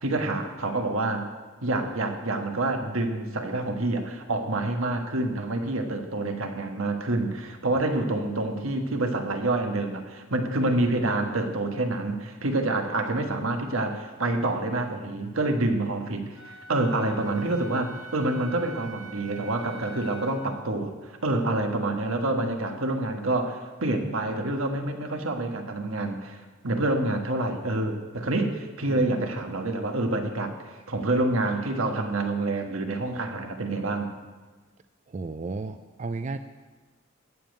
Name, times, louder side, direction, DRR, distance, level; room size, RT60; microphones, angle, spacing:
voice 1, 0.0-1.2 1.6-26.4 26.6-34.1, right 2 dB, 85° right, 5 dB, 1.4 m, -27 dB
Wind instrument woodwind instrument, 16.4-20.5, right 2 dB, 65° left, 2.4 m, -44 dB
voice 2, 35.1-36.4, right 3 dB, 35° right, 10 dB, 0.4 m, -33 dB
14.5 x 5.4 x 9.1 m, 1.3 s
head